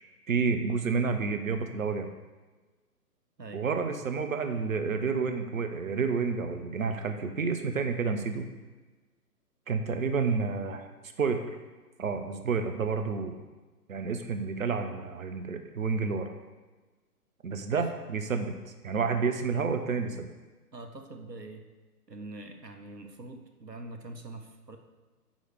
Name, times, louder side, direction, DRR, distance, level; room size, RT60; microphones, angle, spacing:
voice 1, 0.3-2.1 3.5-8.5 9.7-10.9 11.2-11.5 12.0-13.4 13.9-16.3 17.4-20.3, right 5 dB, 55° right, 7 dB, 1.0 m, -30 dB
voice 2, 20.7-21.7 22.1-24.8, right 2 dB, 90° right, 5 dB, 1.1 m, -44 dB
9.3 x 3.3 x 6.5 m, 1.3 s
figure-of-eight pair, 130°, 47 cm